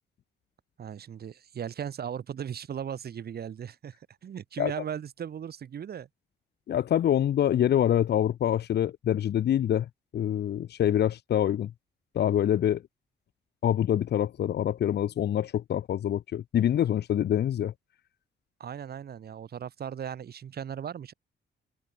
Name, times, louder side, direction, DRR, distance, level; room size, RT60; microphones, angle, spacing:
voice 1, 0.8-4.0 4.2-6.1 18.6-21.1, right 8 dB, 60° right, 2.8 m, -37 dB
voice 2, 6.7-11.7 12.1-12.8 13.6-17.7, left 10 dB, 65° left, 1.2 m, -25 dB
open air
cardioid pair, 85°, 19 cm